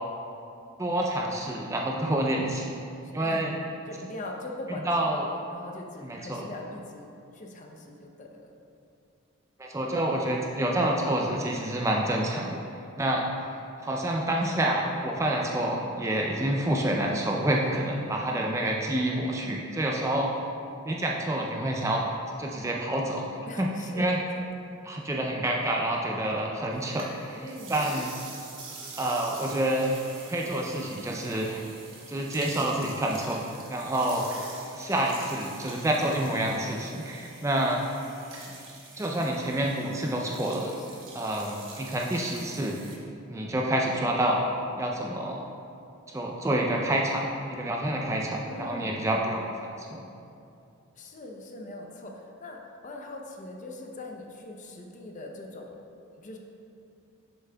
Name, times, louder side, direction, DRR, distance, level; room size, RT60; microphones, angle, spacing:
voice 1, 0.8-2.8 3.1-3.5 4.9-5.2 6.0-6.4 9.6-12.6 13.0-13.3 13.8-20.3 20.8-22.0 22.4-23.3 23.6-23.7 24.0-24.2 24.8-28.1 29.0-29.9 30.3-31.6 32.1-33.4 33.7-34.2 34.7-37.8 39.0-40.7 41.2-42.8 43.3-44.4 44.8-45.4 46.1-49.4 49.8-50.0, right 1 dB, 15° right, -1 dB, 0.3 m, -28 dB
voice 2, 3.0-3.5 3.9-5.2 5.5-8.5 23.5-24.4 27.4-27.7 40.8-41.1 48.4-48.9 51.0-55.7 56.1-56.4, left 1 dB, 35° left, 1 dB, 0.5 m, -41 dB
sound 1, 26.7-43.0, right 3 dB, 65° right, 1.1 m, -45 dB
7.2 x 7.0 x 2.2 m, 2.6 s
head